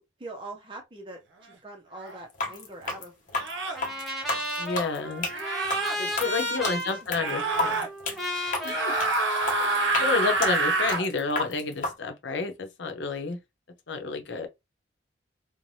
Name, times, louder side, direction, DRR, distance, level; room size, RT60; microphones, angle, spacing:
voice 1, 0.2-3.1 6.2-7.6 9.6-9.7, right 2 dB, 25° right, 0.5 m, -43 dB
sound 1, 2.0-2.2 3.4-3.8 5.3-6.0 7.1-7.9 8.6-11.1, right 2 dB, 80° right, 0.7 m, -27 dB
sound 2, 2.3-11.9, left 3 dB, 45° left, 0.8 m, -32 dB
Trumpet, 3.7-10.0, left 1 dB, ahead, 0.9 m, -34 dB
voice 2, 4.6-5.3 6.0-7.9 8.6-8.9 10.0-13.4 13.9-14.5, left 4 dB, 80° left, 0.7 m, -30 dB
3.2 x 2.1 x 2.7 m
head